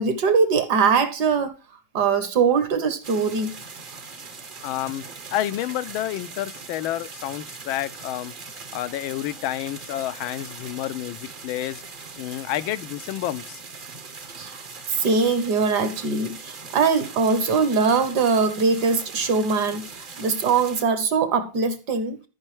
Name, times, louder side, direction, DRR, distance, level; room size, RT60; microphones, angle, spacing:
voice 1, 0.0-1.5 1.9-3.6 14.4-14.6 14.9-22.2, right 5 dB, 60° right, 1.4 m, -22 dB
sound 1, 3.0-20.8, right 4 dB, 45° right, 0.7 m, -40 dB
voice 2, 4.6-5.0 5.3-8.3 8.7-11.8 12.2-13.6, left 13 dB, 80° left, 1.4 m, -29 dB
13.5 x 5.3 x 3.1 m
omnidirectional pair, 2.2 m